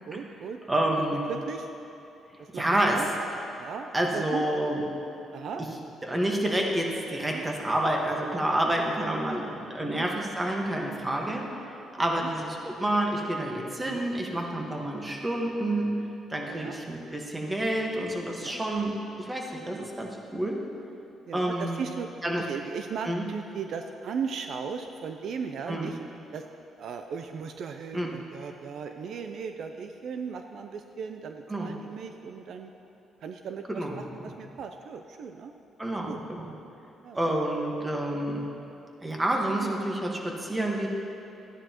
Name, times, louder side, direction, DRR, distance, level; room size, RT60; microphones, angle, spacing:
voice 1, 0.1-0.6 1.0-1.7 2.4-2.6 2.9-3.1 3.6-4.4 5.3-5.6 7.2-7.4 8.7-8.8 9.9-10.1 11.2-11.5 12.1-12.3 13.8-14.1 16.4-16.8 18.4-18.6 19.6-19.9 20.7-26.0 26.3-26.4 26.8-32.7 33.2-35.5 36.1-36.2 37.0-37.4 39.4-39.7, right 6 dB, 65° right, 6 dB, 0.4 m, -37 dB
voice 2, 0.7-1.2 2.5-3.0 3.9-4.8 6.0-11.4 12.0-20.6 21.3-21.8 22.2-22.4 23.1-23.3 25.7-25.9 27.9-28.1 31.5-31.7 33.7-34.3 35.8-36.5 37.1-38.5 39.0-40.9, right 1 dB, 15° right, 0 dB, 1.4 m, -29 dB
13.5 x 9.8 x 3.0 m, 2.9 s
cardioid pair, 90°, 0 cm